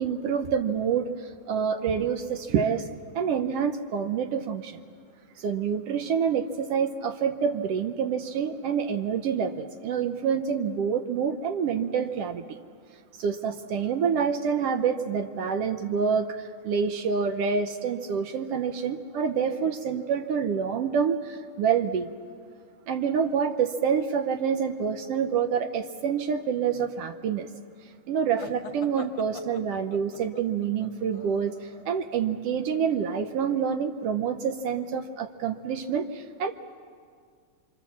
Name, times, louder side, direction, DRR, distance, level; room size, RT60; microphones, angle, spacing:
voice 1, 0.0-2.9 3.1-4.8 5.4-12.6 13.1-22.1 22.9-27.5 28.1-36.5, right 7 dB, 80° right, 7 dB, 1.3 m, -27 dB
sound 1, 28.3-32.0, left 4 dB, 60° left, 2.1 m, -44 dB
26.5 x 25.0 x 7.2 m, 2.1 s
omnidirectional pair, 3.7 m